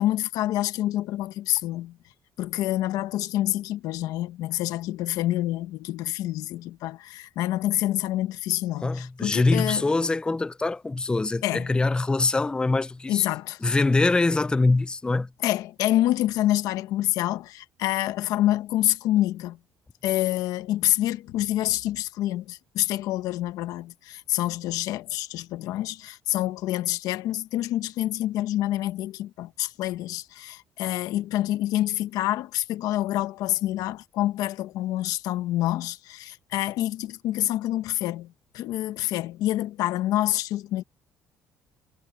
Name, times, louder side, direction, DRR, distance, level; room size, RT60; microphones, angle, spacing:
voice 1, 0.0-2.0 2.4-9.9 11.4-11.7 13.1-13.8 15.4-19.6 20.0-40.8, left 14 dB, 80° left, 1.2 m, -27 dB
voice 2, 8.8-13.2 13.6-15.3, left 3 dB, 15° left, 0.6 m, -23 dB
cardioid pair, 95°, 6 cm